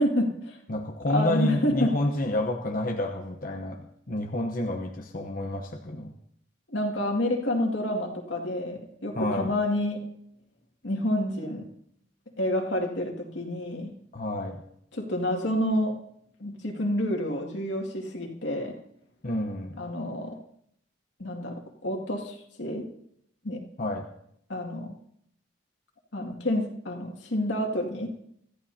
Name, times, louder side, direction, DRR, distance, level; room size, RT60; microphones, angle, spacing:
voice 1, 0.0-0.6 1.1-1.9 6.7-10.1 10.8-11.7 12.4-13.9 14.9-16.0 16.4-18.8 19.8-20.4 21.2-22.9 23.4-23.6 24.5-25.0 26.1-28.1, left 1 dB, 85° left, 1 dB, 2.3 m, -28 dB
voice 2, 0.7-6.1 9.1-9.5 14.1-14.6 19.2-19.8 23.8-24.1, left 1 dB, 50° left, 2 dB, 1.0 m, -29 dB
26.0 x 13.5 x 2.8 m, 0.69 s
head